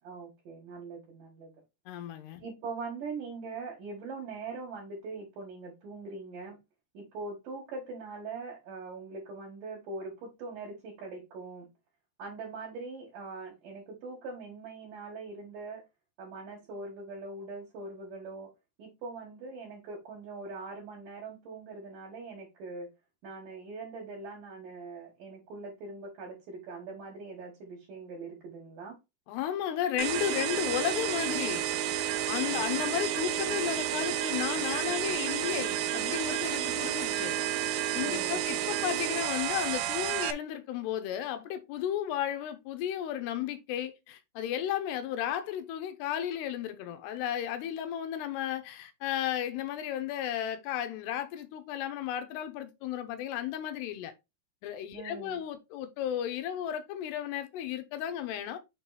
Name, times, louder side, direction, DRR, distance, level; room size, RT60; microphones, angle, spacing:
voice 1, 0.0-1.6 2.4-6.6 6.9-11.7 12.2-15.8 16.2-18.5 18.8-22.9 23.2-29.0 38.0-38.4 54.9-55.4, right 3 dB, 60° right, 3.1 m, -42 dB
voice 2, 1.9-2.4 29.3-31.7 32.3-37.4 37.9-54.1 54.6-58.6, left 10 dB, 85° left, 3.0 m, -34 dB
sound 1, 30.0-40.3, right 11 dB, 80° right, 2.3 m, -31 dB
6.8 x 4.0 x 4.1 m
omnidirectional pair, 4.7 m